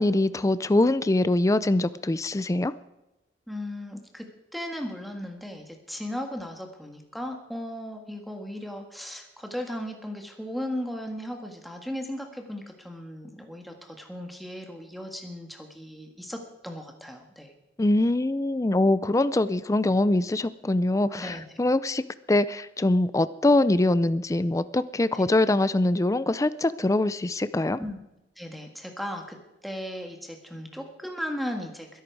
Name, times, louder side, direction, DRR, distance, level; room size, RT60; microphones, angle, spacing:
voice 1, 0.0-2.7 17.8-22.0 22.3-27.8, left 2 dB, 20° left, 15 dB, 0.4 m, -23 dB
voice 2, 3.5-4.2 4.5-17.5 21.1-21.4 25.1-25.2 27.8-28.0 28.4-29.4 29.6-32.0, equal, ahead, 2 dB, 1.6 m, -36 dB
21.5 x 11.5 x 4.7 m, 0.95 s
head